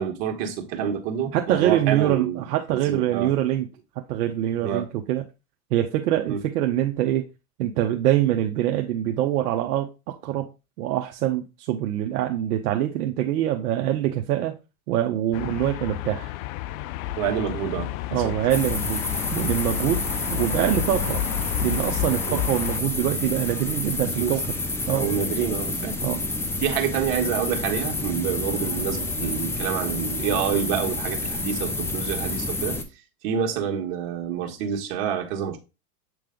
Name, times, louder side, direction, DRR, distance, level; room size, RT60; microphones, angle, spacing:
voice 1, 0.0-2.4 2.7-3.3 4.6-4.9 6.3-6.4 17.2-18.3 22.3-22.4 24.0-24.4 24.9-26.0 26.6-32.8 33.2-35.6, right 8 dB, 60° right, 1.7 m, -27 dB
voice 2, 1.3-3.7 4.1-5.2 5.7-7.3 7.6-10.5 10.8-14.5 14.9-16.3 18.1-19.0 19.3-20.0 20.3-21.2 21.6-24.4 24.9-25.1 26.0-26.2, right 12 dB, 80° right, 0.9 m, -24 dB
sound 1, 15.3-22.8, left 12 dB, 60° left, 0.6 m, -31 dB
sound 2, 18.5-32.8, left 2 dB, 5° left, 0.4 m, -29 dB
7.8 x 3.2 x 3.7 m
supercardioid pair, 120°, 46 cm